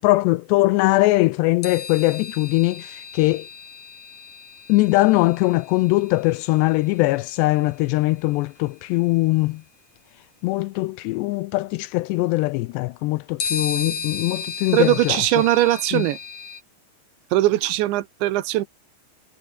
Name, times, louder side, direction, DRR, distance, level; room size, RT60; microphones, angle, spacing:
voice 1, 0.0-3.5 4.7-9.6 10.4-15.2 15.9-16.1, left 20 dB, 85° left, 2.6 m, -21 dB
sound 1, 1.6-7.3 8.6-8.7 13.4-16.6, left 6 dB, 40° left, 4.5 m, -34 dB
voice 2, 14.7-16.2 17.3-18.7, right 15 dB, 80° right, 3.5 m, -20 dB
omnidirectional pair, 5.2 m